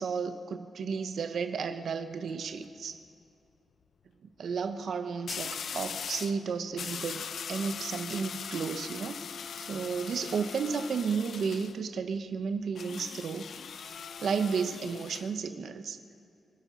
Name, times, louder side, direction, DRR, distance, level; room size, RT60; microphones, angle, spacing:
voice 1, 0.0-3.0 4.4-9.2 9.7-13.5 14.2-16.0, right 5 dB, 50° right, 9 dB, 0.8 m, -33 dB
sound 1, 2.1-2.5 5.3-6.4 6.8-11.8 12.7-15.3, left 6 dB, 50° left, 0.5 m, -40 dB
24.5 x 9.5 x 6.1 m, 2.5 s
wide cardioid pair, 180°, 0 cm